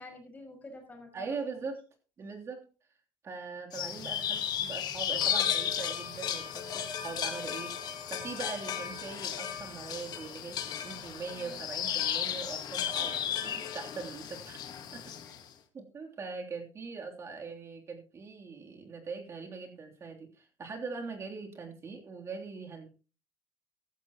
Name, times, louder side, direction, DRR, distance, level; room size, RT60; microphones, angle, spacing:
voice 1, 0.0-1.7 11.3-11.7 12.9-13.3 15.2-15.4, left 2 dB, 20° left, 3 dB, 5.5 m, -50 dB
voice 2, 1.1-1.8 2.2-2.6 3.2-15.1 15.7-22.9, right 4 dB, 35° right, 2 dB, 3.2 m, -41 dB
sound 1, 3.7-15.4, left 9 dB, 55° left, 1.9 m, -34 dB
14.5 x 13.0 x 3.0 m, 0.35 s
cardioid pair, 125°, 8 cm